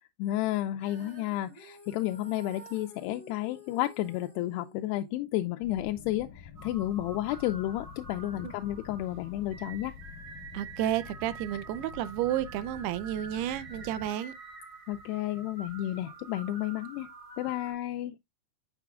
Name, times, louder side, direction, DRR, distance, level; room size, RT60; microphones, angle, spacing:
voice 1, 0.2-10.0 14.9-17.1 17.4-18.2, left 14 dB, 85° left, 2.6 m, -32 dB
Female singing, 0.8-7.0, left 1 dB, ahead, 3.2 m, -52 dB
sound 1, 5.6-14.1, left 7 dB, 65° left, 2.4 m, -48 dB
sound 2, 6.5-17.7, right 3 dB, 45° right, 0.7 m, -47 dB
voice 2, 10.5-14.3, right 12 dB, 85° right, 2.5 m, -31 dB
7.0 x 6.6 x 2.3 m
omnidirectional pair, 4.7 m